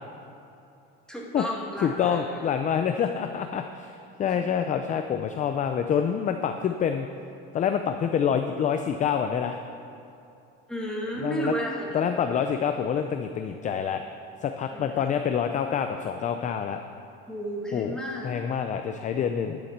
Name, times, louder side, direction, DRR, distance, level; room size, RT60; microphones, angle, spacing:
voice 1, 1.1-2.4 4.2-4.3 10.7-12.0 14.7-15.1 17.3-18.3, right 1 dB, 5° left, -4 dB, 2.2 m, -33 dB
voice 2, 1.8-7.1 7.5-9.6 11.2-11.5 11.9-14.0 14.4-16.8 17.7-18.0 18.2-19.6, left 7 dB, 25° left, 7 dB, 0.4 m, -27 dB
11.0 x 7.0 x 7.3 m, 2.8 s
cardioid pair, 145°, 29 cm